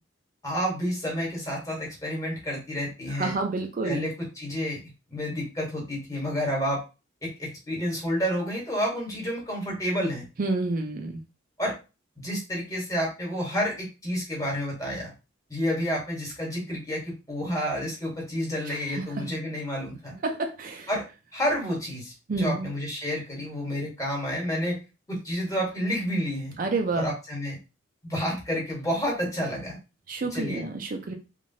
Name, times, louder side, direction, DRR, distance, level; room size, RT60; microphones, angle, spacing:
voice 1, 0.4-3.3 3.8-4.8 5.1-6.8 7.4-10.2 11.6-11.7 12.2-15.1 15.5-20.1 20.9-21.1 21.3-24.8 25.1-26.6 26.9-27.6 28.0-29.8 30.3-30.6, equal, 15° left, -3 dB, 1.2 m, -30 dB
voice 2, 3.2-4.0 10.4-11.2 18.7-19.2 20.2-20.9 22.3-22.7 26.6-27.1 30.1-31.1, right 3 dB, 45° right, 4 dB, 0.4 m, -29 dB
3.1 x 2.4 x 2.7 m, 0.30 s
head